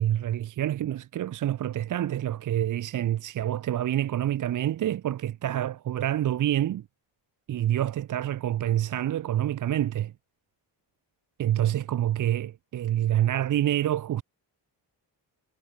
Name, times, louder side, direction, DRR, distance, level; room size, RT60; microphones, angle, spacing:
voice 1, 0.0-6.8 7.5-10.1 11.4-14.2, right 12 dB, 45° right, 0.5 m, -27 dB
cardioid pair, 110°, 45 cm